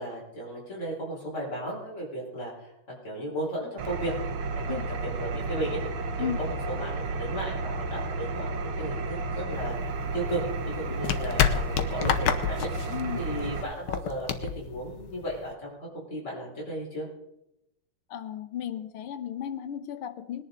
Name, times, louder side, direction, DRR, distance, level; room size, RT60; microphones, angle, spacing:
voice 1, 0.0-2.7 3.0-4.2 4.5-5.8 6.2-9.8 10.1-12.7 13.2-14.3 14.5-17.1, right 1 dB, 30° left, -5 dB, 5.3 m, -35 dB
Engine, 3.8-13.6, right 3 dB, 70° right, 1.9 m, -32 dB
sound 1, 9.6-15.5, left 8 dB, 60° left, 1.4 m, -29 dB
voice 2, 12.9-13.3 18.1-20.4, left 9 dB, 80° left, 8 dB, 1.8 m, -34 dB
20.0 x 10.5 x 4.0 m, 0.85 s
omnidirectional pair, 2.4 m